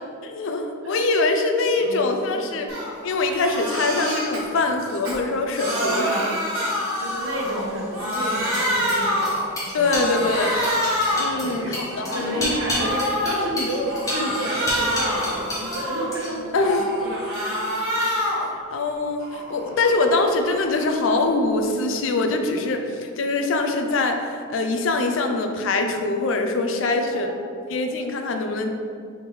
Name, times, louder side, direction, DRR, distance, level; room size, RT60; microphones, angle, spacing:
voice 1, 0.2-2.7 3.0-6.1 9.7-10.7 11.1-12.5 16.5-16.9 18.7-27.3 27.7-28.7, left 3 dB, 65° left, 5 dB, 0.4 m, -23 dB
Crying sobbing, 2.7-2.9 3.2-4.4 4.9-7.7 7.9-9.5 9.8-11.4 11.8-13.4 13.8-16.2 16.6-18.5 18.9-21.3, equal, 85° right, 1.3 m, -27 dB
voice 2, 5.7-6.3 7.0-9.4 9.7-10.0 11.4-11.8 12.1-16.6 17.0-17.6 18.0-18.2 18.5-18.6 26.8-27.5, right 1 dB, 70° right, -4 dB, 1.0 m, -30 dB
sound 1, 7.3-15.8 16.1-16.6, left 1 dB, 15° left, 0.9 m, -31 dB
3.6 x 3.2 x 4.2 m, 2.3 s
head